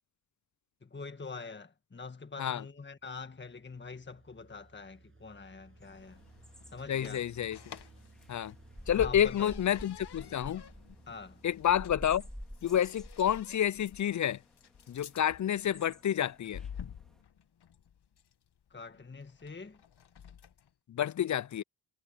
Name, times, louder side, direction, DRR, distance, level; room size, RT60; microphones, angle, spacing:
voice 1, 0.8-6.2 6.7-7.2 8.9-9.5 11.1-11.4 18.7-19.8, left 4 dB, 25° left, 1.7 m, -45 dB
sound 1, 3.0-13.0, right 3 dB, 25° right, 7.7 m, -60 dB
sound 2, 5.7-20.7, left 8 dB, 55° left, 1.9 m, -52 dB
sound 3, 5.8-17.2, equal, ahead, 4.1 m, -49 dB
voice 2, 6.9-7.8 8.3-8.5 8.9-10.6 11.4-12.2 12.6-14.4 14.9-16.6 20.9-21.6, left 10 dB, 40° left, 0.5 m, -29 dB
supercardioid pair, 55°, 46 cm